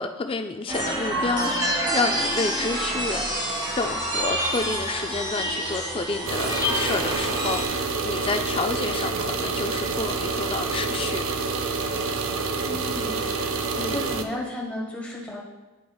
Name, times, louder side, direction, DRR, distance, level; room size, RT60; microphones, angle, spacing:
voice 1, 0.0-11.2 13.7-14.1, left 3 dB, 25° left, 7 dB, 0.3 m, -29 dB
sound 1, 0.7-7.7, right 1 dB, 20° right, 1.1 m, -27 dB
sound 2, 6.3-14.2, right 4 dB, 75° right, 0.5 m, -27 dB
voice 2, 12.6-13.2 13.6-15.4, left 1 dB, 5° left, -3 dB, 1.2 m, -33 dB
10.5 x 4.9 x 2.3 m, 1.2 s
head